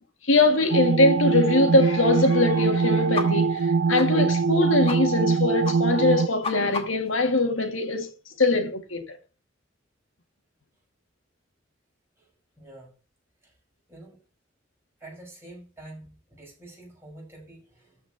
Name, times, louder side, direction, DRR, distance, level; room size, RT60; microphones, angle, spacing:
voice 1, 0.2-8.1 8.4-9.2, left 2 dB, 80° left, 2.1 m, -22 dB
sound 1, 0.7-6.3, right 5 dB, 65° right, 0.4 m, -23 dB
sound 2, 3.1-3.3 3.5-3.6 4.0-4.1 4.4-4.5 4.9-5.0 5.2-5.4 5.6-5.8 6.1-7.1, left 3 dB, 30° left, 2.2 m, -32 dB
voice 2, 12.6-12.9 13.4-13.5 13.9-14.2 15.0-18.0, right 1 dB, 15° right, 5.8 m, -46 dB
13.5 x 5.0 x 5.9 m
head